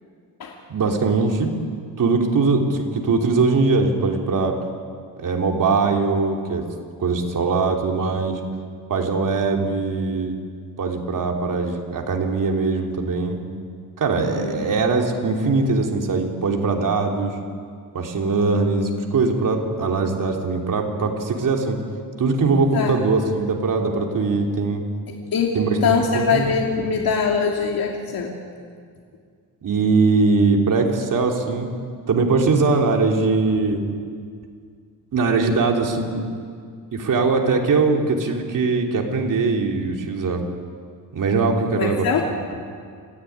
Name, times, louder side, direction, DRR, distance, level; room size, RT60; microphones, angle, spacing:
voice 1, 0.7-1.6 2.0-4.6 5.2-6.6 7.0-8.4 8.9-10.4 10.8-13.4 14.0-17.3 17.9-21.8 22.2-24.8 25.5-26.4 29.6-31.7 32.1-33.8 35.1-36.2 36.9-40.4 41.1-42.1, right 4 dB, 55° right, 1 dB, 3.5 m, -21 dB
voice 2, 14.3-14.8 22.7-22.9 25.1-28.4 41.7-42.3, left 5 dB, 70° left, -1 dB, 2.8 m, -23 dB
27.0 x 15.5 x 9.6 m, 2.2 s
cardioid pair, 120°, 37 cm